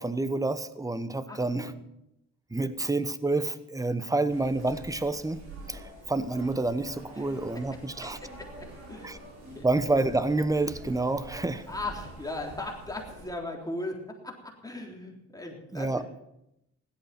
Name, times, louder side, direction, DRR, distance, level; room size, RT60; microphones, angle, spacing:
voice 1, 0.0-1.7 2.5-5.4 5.7-8.2 9.0-9.2 9.6-11.6 15.7-16.0, right 2 dB, 10° right, 13 dB, 1.0 m, -28 dB
voice 2, 1.3-1.7 2.6-2.7 7.2-7.4 8.0-8.1 8.4-9.1 9.5-9.7 11.7-16.0, left 2 dB, 10° left, 0 dB, 3.5 m, -38 dB
sound 1, 4.3-13.3, right 2 dB, 60° right, 4.8 m, -46 dB
16.0 x 12.0 x 5.9 m, 0.84 s
cardioid pair, 90°, 30 cm